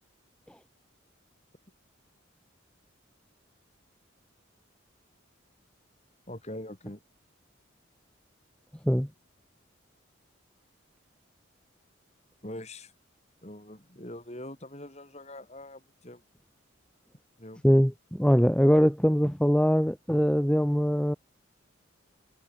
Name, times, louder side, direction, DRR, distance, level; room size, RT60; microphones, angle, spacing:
voice 1, 6.3-7.0 12.4-12.9 13.4-16.2 17.4-17.6, left 1 dB, 35° left, 4.4 m, -43 dB
voice 2, 17.6-21.2, equal, 5° left, 1.6 m, -22 dB
head